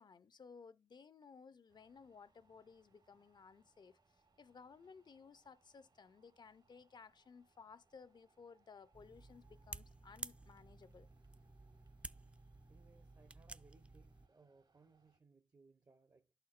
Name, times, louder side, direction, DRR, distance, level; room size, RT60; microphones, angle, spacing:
voice 1, 0.0-11.1, left 5 dB, 70° left, 0.5 m, -59 dB
sound 1, 1.7-15.2, right 3 dB, 65° right, 1.0 m, -76 dB
sound 2, 8.9-14.3, right 2 dB, 15° right, 0.3 m, -53 dB
voice 2, 12.7-16.3, right 4 dB, 45° right, 0.6 m, -67 dB
12.0 x 4.3 x 2.5 m
wide cardioid pair, 75°, 8 cm